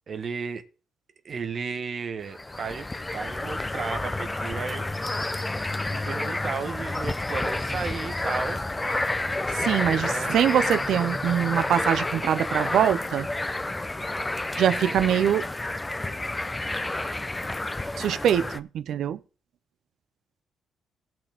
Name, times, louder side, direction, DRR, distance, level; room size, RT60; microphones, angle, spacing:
voice 1, 0.1-0.6 1.2-4.8 5.9-8.6 9.9-10.3, right 5 dB, 50° right, 1.1 m, -34 dB
sound 1, 2.3-18.6, left 2 dB, 15° left, 0.6 m, -30 dB
voice 2, 9.5-13.3 14.6-15.4 18.0-19.2, right 9 dB, 70° right, 0.6 m, -23 dB
17.0 x 6.0 x 3.5 m
cardioid pair, 90°, 0 cm